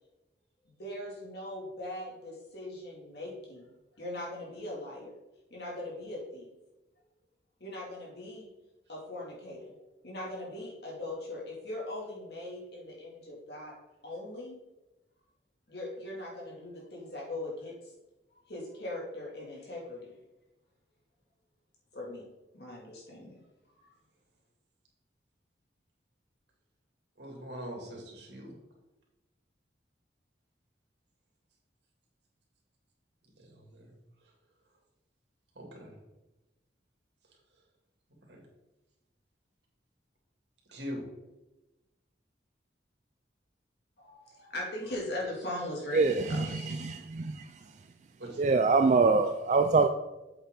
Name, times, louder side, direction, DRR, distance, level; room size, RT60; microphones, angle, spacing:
voice 1, 0.6-3.7 4.0-5.1 5.5-6.5 7.6-8.5 8.9-9.7 10.0-13.8 14.0-14.6 15.7-17.9 18.5-20.2 21.9-22.3 22.5-23.4 23.8-23.9 44.0-46.8, left 1 dB, 60° left, -3 dB, 2.7 m, -40 dB
voice 2, 27.2-28.5 33.2-33.9 34.2-34.3 35.5-35.9 38.2-38.4 40.7-41.0 48.2-48.6 48.9-49.0, equal, 70° right, -1 dB, 2.8 m, -43 dB
voice 3, 45.9-46.5 46.8-47.4 48.4-49.9, right 4 dB, 40° right, 7 dB, 0.3 m, -24 dB
8.2 x 7.8 x 3.9 m, 1.0 s
head